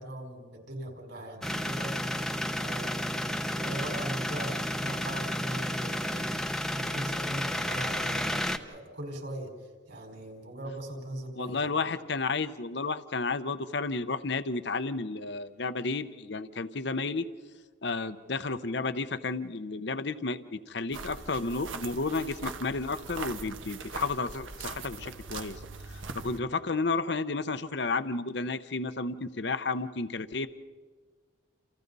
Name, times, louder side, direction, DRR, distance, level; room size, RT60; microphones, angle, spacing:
voice 1, 0.0-6.3 6.7-8.4 8.7-9.5 9.9-11.7, right 1 dB, 60° right, 1 dB, 5.0 m, -40 dB
sound 1, 1.4-8.6, equal, ahead, 0.7 m, -32 dB
voice 2, 11.4-17.3 17.8-25.6 26.1-30.5, left 3 dB, 60° left, 12 dB, 0.8 m, -32 dB
sound 2, 20.9-26.4, right 4 dB, 80° right, 1.4 m, -41 dB
29.0 x 28.5 x 4.1 m, 1.5 s
head